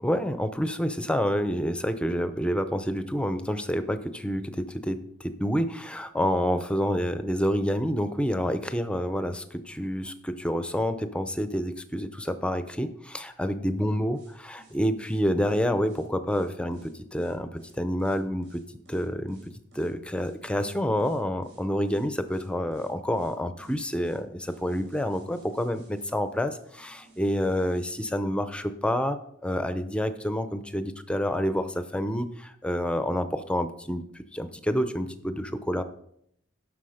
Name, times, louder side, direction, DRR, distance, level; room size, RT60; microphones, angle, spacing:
voice 1, 0.0-19.4 19.7-29.2 29.4-35.8, equal, 5° left, 10 dB, 0.6 m, -28 dB
sound 1, 14.1-28.0, right 3 dB, 85° right, 4.3 m, -58 dB
12.0 x 6.2 x 5.1 m, 0.72 s
head